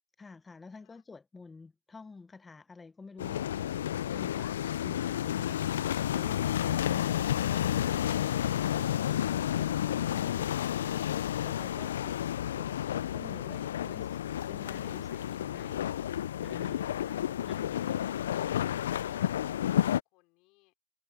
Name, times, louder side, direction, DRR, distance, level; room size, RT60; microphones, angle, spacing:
voice 1, 0.2-12.2 12.5-12.8 13.1-15.8 16.4-17.2, left 4 dB, 10° left, 0.8 m, -50 dB
sound 1, 3.2-20.0, left 11 dB, 75° left, 0.3 m, -31 dB
voice 2, 17.8-20.7, left 23 dB, 40° left, 4.3 m, -65 dB
supercardioid pair, 145°, 0 cm